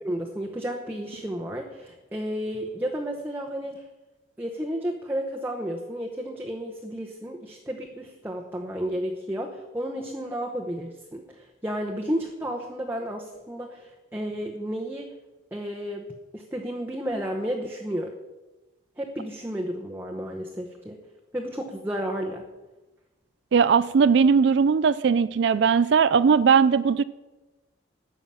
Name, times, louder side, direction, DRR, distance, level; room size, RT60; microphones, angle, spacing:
voice 1, 0.0-3.8 4.4-15.1 15.5-16.0 16.3-18.1 19.0-21.0 21.3-22.5, equal, 10° right, 0 dB, 0.9 m, -32 dB
voice 2, 23.5-27.0, right 6 dB, 65° right, 16 dB, 0.4 m, -19 dB
13.0 x 5.8 x 8.6 m, 1.1 s
head